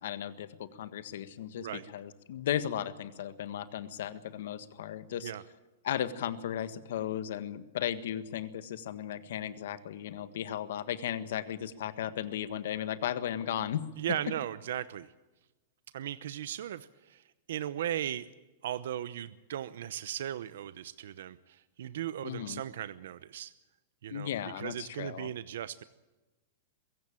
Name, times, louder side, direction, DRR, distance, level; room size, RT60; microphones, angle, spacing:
voice 1, 0.0-5.3 5.8-13.9 22.2-22.6 24.1-25.3, left 10 dB, 65° left, 13 dB, 1.5 m, -36 dB
voice 2, 14.0-15.1 15.9-18.3 18.6-23.5 24.0-24.3 24.6-25.8, right 11 dB, 70° right, 14 dB, 0.8 m, -37 dB
22.5 x 16.0 x 8.9 m, 1.1 s
supercardioid pair, 170°, 0 cm